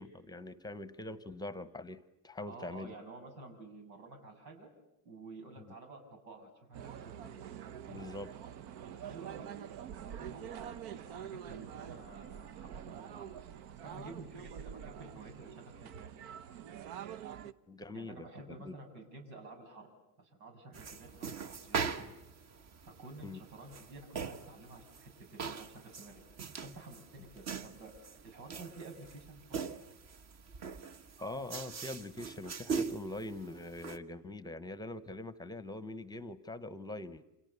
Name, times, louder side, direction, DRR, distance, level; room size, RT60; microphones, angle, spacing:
voice 1, 0.0-2.9 5.7-5.8 7.9-8.3 17.7-18.7 23.2-23.4 31.2-37.2, left 2 dB, 10° left, 14 dB, 1.0 m, -43 dB
voice 2, 2.5-4.7 5.0-7.3 8.8-9.6 10.0-13.3 13.8-16.1 17.9-19.9 20.2-22.1 22.8-26.2 26.6-29.7, right 3 dB, 90° right, 4 dB, 7.5 m, -51 dB
sound 1, 6.7-17.5, right 9 dB, 50° right, 1.0 m, -46 dB
sound 2, 20.7-34.0, right 5 dB, 30° right, 1.4 m, -42 dB
29.0 x 27.5 x 6.9 m, 0.89 s
supercardioid pair, 125°, 49 cm